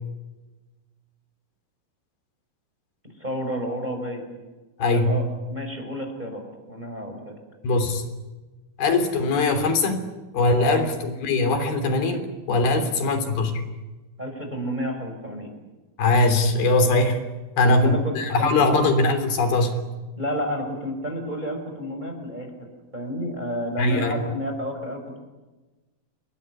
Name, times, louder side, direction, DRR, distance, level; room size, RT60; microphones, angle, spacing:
voice 1, 3.2-4.2 4.8-5.2 5.5-6.4 6.7-7.4 10.6-10.8 12.7-13.0 14.2-15.5 17.6-18.9 20.2-22.7 22.9-25.2, equal, 10° right, 3 dB, 6.0 m, -30 dB
voice 2, 4.8-5.1 7.6-8.1 8.8-10.1 10.3-13.6 16.0-17.2 17.6-19.8 23.8-24.2, left 2 dB, 75° left, 7 dB, 5.2 m, -21 dB
29.5 x 20.5 x 9.8 m, 1.2 s
omnidirectional pair, 4.4 m